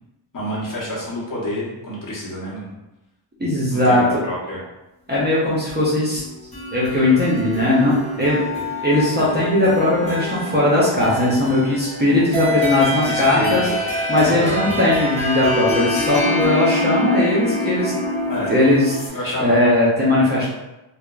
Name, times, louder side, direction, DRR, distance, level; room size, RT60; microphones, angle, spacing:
voice 1, 0.3-2.8 3.7-4.6 13.1-13.8 14.2-14.6 18.3-18.6 19.1-19.5, left 1 dB, 40° left, -6 dB, 0.9 m, -28 dB
voice 2, 3.4-4.0 5.1-6.2 6.7-13.7 14.1-17.9 18.5-18.9 19.4-20.5, left 1 dB, 20° right, -7 dB, 0.6 m, -18 dB
sound 1, 6.1-19.1, left 2 dB, 15° left, 0.9 m, -25 dB
2.8 x 2.2 x 2.3 m, 0.98 s
wide cardioid pair, 110°, 50 cm